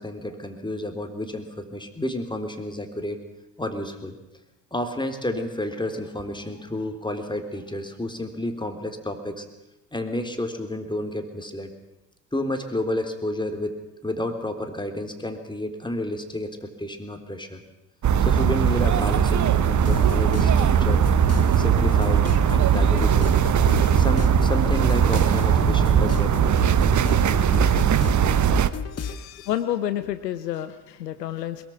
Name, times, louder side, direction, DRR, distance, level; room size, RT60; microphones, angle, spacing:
voice 1, 0.0-3.2 3.6-4.2 4.7-9.5 9.9-11.7 12.3-13.8 14.0-17.6 18.2-21.1 21.6-23.4 23.9-26.6 29.1-29.2, left 1 dB, 10° left, 6 dB, 3.9 m, -31 dB
sound 1, 18.0-28.7, right 9 dB, 35° right, 1.1 m, -19 dB
sound 2, 19.6-29.2, left 5 dB, 30° left, 1.8 m, -32 dB
voice 2, 28.9-31.7, left 11 dB, 85° left, 11 dB, 1.0 m, -30 dB
22.5 x 22.0 x 6.1 m, 0.98 s
hypercardioid pair, 55°, 48 cm